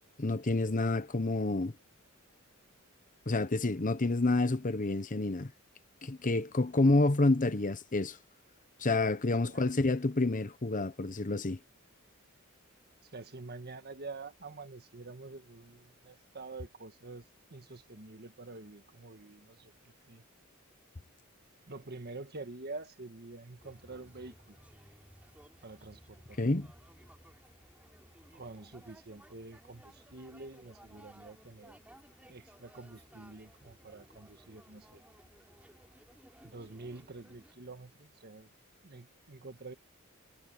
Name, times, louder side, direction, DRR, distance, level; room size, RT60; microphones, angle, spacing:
voice 1, 0.2-1.7 3.3-5.5 6.0-8.2 8.8-11.6 26.4-26.7, left 2 dB, 40° left, 1.0 m, -28 dB
voice 2, 13.0-17.2 17.5-20.2 21.7-24.6 25.6-26.5 28.3-31.8 32.3-35.0 36.4-38.5 38.8-39.7, right 3 dB, 50° right, 1.5 m, -47 dB
sound 1, 23.6-37.5, equal, 5° right, 6.4 m, -58 dB
head